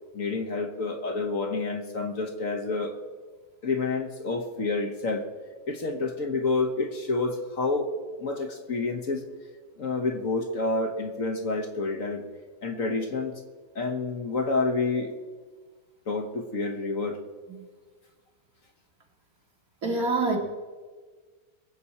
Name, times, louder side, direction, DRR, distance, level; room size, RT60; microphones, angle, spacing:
voice 1, 0.1-2.9 3.6-5.2 5.7-7.9 8.2-9.2 9.8-12.2 12.6-13.3 13.7-15.1 16.1-17.2, left 3 dB, 55° left, 4 dB, 1.4 m, -28 dB
voice 2, 19.8-20.4, right 3 dB, 55° right, 0 dB, 2.4 m, -25 dB
22.0 x 7.7 x 4.2 m, 1.5 s
omnidirectional pair, 1.8 m